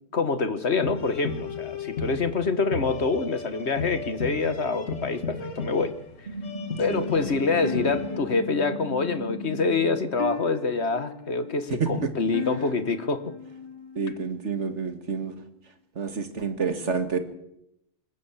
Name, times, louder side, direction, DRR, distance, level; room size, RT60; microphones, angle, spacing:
voice 1, 0.1-5.9 6.8-13.3, left 4 dB, 60° left, 11 dB, 1.7 m, -26 dB
sound 1, 0.7-8.2, left 4 dB, 90° left, 2.5 m, -35 dB
sound 2, 6.2-10.2, left 2 dB, 50° right, 4.0 m, -36 dB
sound 3, 7.6-14.7, left 6 dB, 20° left, 1.3 m, -38 dB
voice 2, 14.0-15.3 16.0-17.2, right 5 dB, 70° right, 8 dB, 2.1 m, -28 dB
26.5 x 14.0 x 7.3 m, 0.81 s
omnidirectional pair, 1.3 m